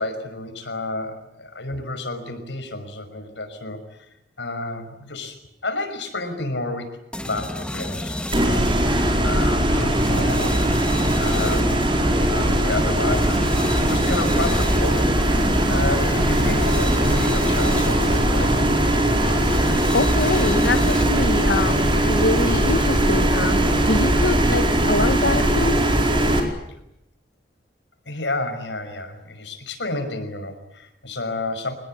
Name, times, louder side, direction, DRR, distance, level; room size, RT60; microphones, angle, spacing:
voice 1, 0.0-3.8 4.4-5.4 5.6-6.9 7.3-8.7 9.2-10.7 11.2-11.8 12.3-18.5 28.1-31.7, left 2 dB, 85° left, 7 dB, 5.7 m, -30 dB
sound 1, 7.1-21.3, left 1 dB, 5° left, 1.6 m, -31 dB
sound 2, 8.3-26.4, right 1 dB, 30° right, 4.6 m, -20 dB
voice 2, 19.9-25.8, left 2 dB, 65° left, 8 dB, 1.1 m, -24 dB
25.0 x 20.5 x 9.9 m, 0.84 s
head